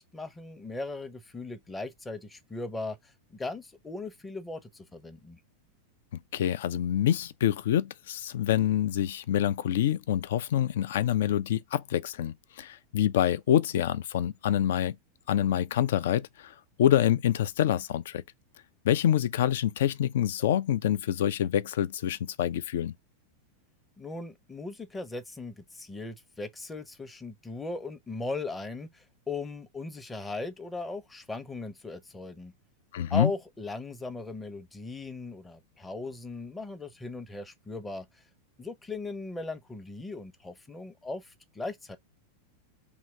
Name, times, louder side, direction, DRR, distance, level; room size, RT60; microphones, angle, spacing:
voice 1, 0.0-5.4 24.0-32.5 33.1-38.1 38.6-42.0, left 3 dB, 10° left, 0.6 m, -38 dB
voice 2, 6.3-15.0 15.3-16.5 16.8-18.2 18.8-22.9 32.9-33.3, left 11 dB, 55° left, 0.3 m, -26 dB
2.8 x 2.2 x 3.1 m
figure-of-eight pair, 90°, 0 cm